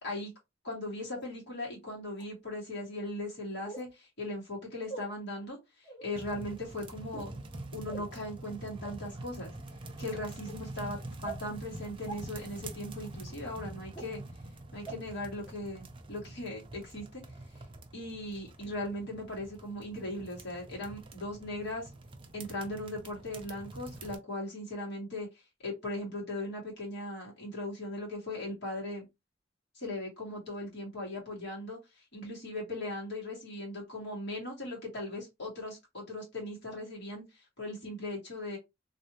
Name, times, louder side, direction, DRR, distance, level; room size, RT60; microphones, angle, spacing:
voice 1, 0.0-0.3 0.6-7.3 7.7-9.5 10.0-14.2 14.7-17.2 17.9-21.9 22.3-25.3 25.6-29.1 29.7-38.6, left 1 dB, 60° left, 1.9 m, -39 dB
sound 1, 1.1-1.2 2.1-2.2 3.6-3.9 4.9-5.0 5.8-6.1 7.0-7.3 7.9-8.1 8.8-8.9 9.5-9.7 10.5-10.6 11.2-11.4 12.1-12.2 13.0-13.1 13.9-14.0 14.9-15.0 15.5-15.6, right 3 dB, 25° left, 1.1 m, -42 dB
sound 2, 6.1-24.2, right 2 dB, 25° right, 0.5 m, -46 dB
3.2 x 2.7 x 2.9 m
head